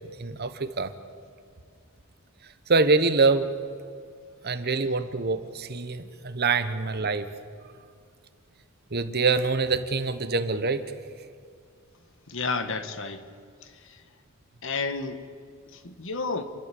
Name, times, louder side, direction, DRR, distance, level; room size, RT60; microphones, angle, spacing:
voice 1, 0.2-0.9 2.7-3.5 4.4-7.3 8.9-10.8, right 4 dB, 45° right, 11 dB, 1.1 m, -25 dB
voice 2, 12.3-13.2 14.6-15.2 15.7-16.4, left 4 dB, 60° left, 9 dB, 1.6 m, -30 dB
28.5 x 12.5 x 8.5 m, 2.2 s
head